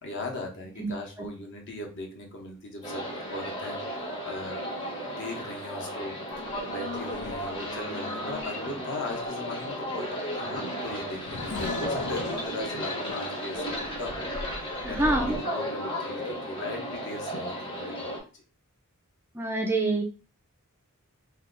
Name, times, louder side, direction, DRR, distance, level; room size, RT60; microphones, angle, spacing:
voice 1, 0.0-6.1 6.6-15.0 15.4-18.4, left 2 dB, 55° left, 1 dB, 0.9 m, -39 dB
sound 1, 2.8-18.2, equal, 20° left, 0.8 m, -34 dB
Race car auto racing / Accelerating revving vroom, 6.3-15.4, left 2 dB, 75° left, 0.6 m, -40 dB
voice 2, 14.8-15.4 19.3-20.0, right 2 dB, 10° right, 2 dB, 0.3 m, -26 dB
2.8 x 2.2 x 3.7 m, 0.34 s
head